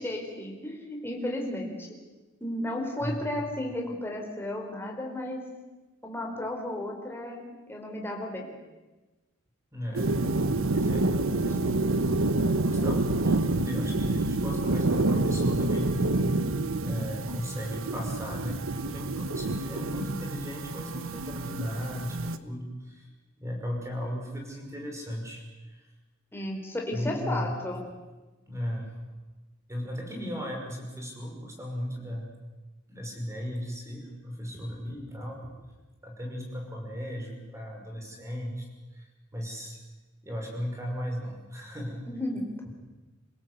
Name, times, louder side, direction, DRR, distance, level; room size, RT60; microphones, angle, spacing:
voice 1, 0.0-1.9 2.4-5.5 6.0-8.5 26.3-27.8 42.1-42.7, left 1 dB, 10° left, 0 dB, 4.4 m, -34 dB
voice 2, 3.0-3.4 9.7-10.1 10.7-12.3 12.6-16.5 16.8-23.1 23.4-25.4 25.7-25.9 26.9-27.5 28.5-29.0 29.7-32.3 32.9-35.5 36.0-38.7 38.9-39.8 40.2-42.0, equal, 15° right, 1 dB, 5.8 m, -36 dB
sound 1, 9.9-22.4, right 2 dB, 70° right, 1.1 m, -28 dB
27.5 x 17.0 x 8.3 m, 1.2 s
head